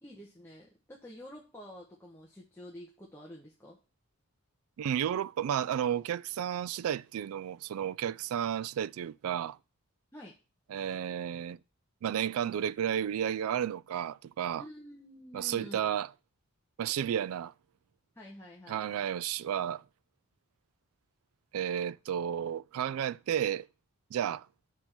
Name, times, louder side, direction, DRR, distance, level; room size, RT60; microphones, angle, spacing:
voice 1, 0.0-3.8 10.1-10.3 14.6-15.9 18.1-18.8, left 1 dB, 10° left, 1.1 m, -49 dB
voice 2, 4.8-9.6 10.7-11.6 12.0-14.6 15.3-16.1 16.8-17.5 18.7-19.8 21.5-23.7 24.1-24.5, right 9 dB, 75° right, 0.3 m, -32 dB
8.1 x 4.4 x 6.0 m
head